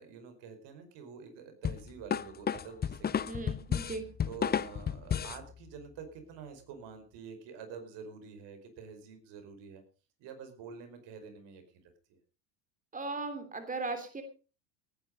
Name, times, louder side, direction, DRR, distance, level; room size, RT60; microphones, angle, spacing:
voice 1, 0.0-3.6 4.2-9.8 10.2-12.2, right 6 dB, 60° right, 8 dB, 5.0 m, -48 dB
sound 1, 1.6-5.4, left 8 dB, 20° left, 0.6 m, -32 dB
voice 2, 3.2-4.2 12.9-14.2, right 3 dB, 15° right, 7 dB, 3.0 m, -37 dB
18.0 x 10.0 x 5.3 m, 0.36 s
hypercardioid pair, 90°, 47 cm